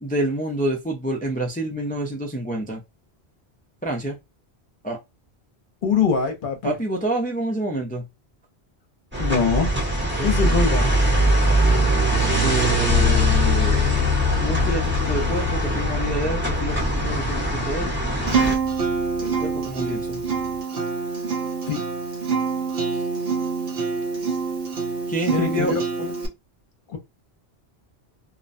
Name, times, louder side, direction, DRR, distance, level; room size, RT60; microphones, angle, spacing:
voice 1, 0.0-2.8 3.8-4.2 4.8-5.0 6.6-8.0 10.1-10.6 12.4-13.9 14.4-17.9 19.2-20.2 25.1-25.7, right 1 dB, 15° left, 0.3 m, -27 dB
voice 2, 5.8-6.7 9.2-9.7 10.2-10.9 21.7-21.8 25.3-26.2 26.9-27.0, left 5 dB, 55° left, 0.9 m, -23 dB
sound 1, 9.1-18.6, right 2 dB, 10° right, 0.7 m, -22 dB
sound 2, 12.9-20.6, left 8 dB, 75° left, 0.9 m, -25 dB
Acoustic guitar, 18.3-26.3, right 5 dB, 65° right, 0.9 m, -26 dB
2.7 x 2.1 x 2.5 m
omnidirectional pair, 1.1 m